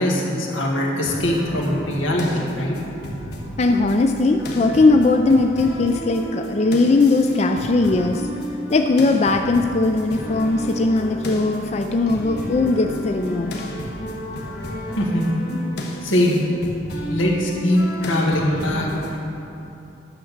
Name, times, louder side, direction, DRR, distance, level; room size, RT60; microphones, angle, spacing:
voice 1, 0.0-2.8 15.0-15.3 16.0-16.4 17.1-18.9, left 1 dB, 85° left, -2 dB, 1.9 m, -21 dB
sound 1, 1.1-19.2, equal, 55° left, 1.4 m, -32 dB
voice 2, 3.6-8.2 8.7-13.5, left 3 dB, 35° left, 5 dB, 0.4 m, -19 dB
11.0 x 6.5 x 7.2 m, 3.0 s
head